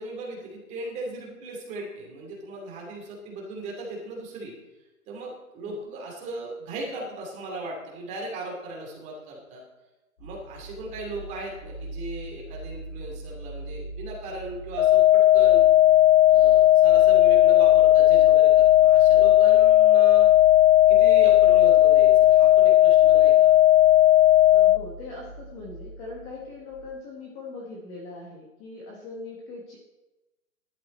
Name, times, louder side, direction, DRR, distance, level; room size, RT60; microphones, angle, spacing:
voice 1, 0.0-4.5 5.1-9.6 10.2-15.6 16.3-20.3 20.9-23.5, right 2 dB, 15° right, -1 dB, 2.6 m, -37 dB
sound 1, 10.2-26.9, right 1 dB, 40° left, 5.5 m, -41 dB
sound 2, 14.8-24.8, left 14 dB, 60° left, 0.5 m, -16 dB
voice 2, 24.5-29.8, left 3 dB, 15° left, -3 dB, 1.2 m, -40 dB
14.5 x 11.5 x 4.2 m, 1.1 s
hypercardioid pair, 160°, 42 cm